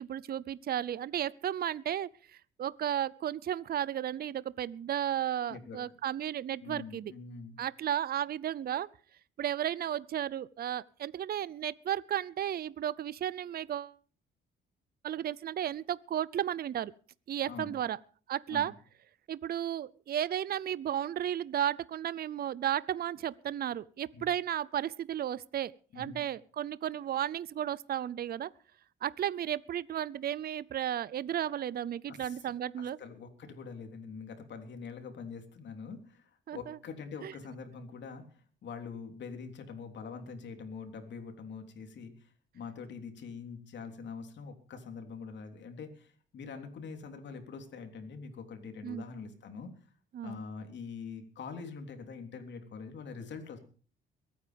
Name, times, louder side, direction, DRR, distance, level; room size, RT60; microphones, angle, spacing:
voice 1, 0.0-2.1 2.6-7.1 7.6-8.9 9.4-13.9 15.0-16.9 17.3-18.0 18.3-18.7 19.3-28.5 29.0-33.0 36.5-36.8 37.2-37.3 48.8-49.0 50.1-50.4, right 10 dB, 50° right, 0.6 m, -34 dB
voice 2, 5.5-5.8 6.6-7.6 17.5-17.8 18.5-18.7 24.1-24.3 25.9-26.2 32.1-49.7 50.2-53.6, left 5 dB, 65° left, 3.4 m, -44 dB
22.5 x 9.5 x 5.2 m
cardioid pair, 90°, 20 cm